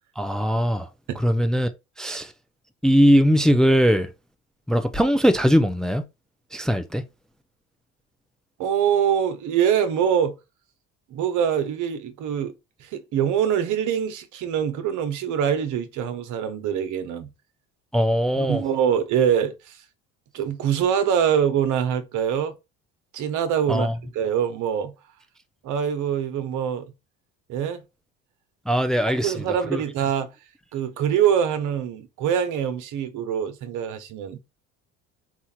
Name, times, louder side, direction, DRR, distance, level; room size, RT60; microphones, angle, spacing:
voice 1, 0.2-0.9 1.2-1.7 2.0-2.3 2.8-4.1 4.7-6.0 6.5-7.0 17.9-18.6 23.7-23.9 28.7-29.3 29.7-29.8, equal, ahead, 0.5 m, -20 dB
voice 2, 8.6-10.4 11.1-12.5 12.8-17.3 18.4-19.8 20.3-22.5 23.1-23.9 24.1-24.9 25.6-26.9 27.5-27.8 29.2-30.3 30.7-34.4, right 8 dB, 65° right, 1.0 m, -24 dB
4.5 x 2.4 x 4.3 m
supercardioid pair, 95°, 32 cm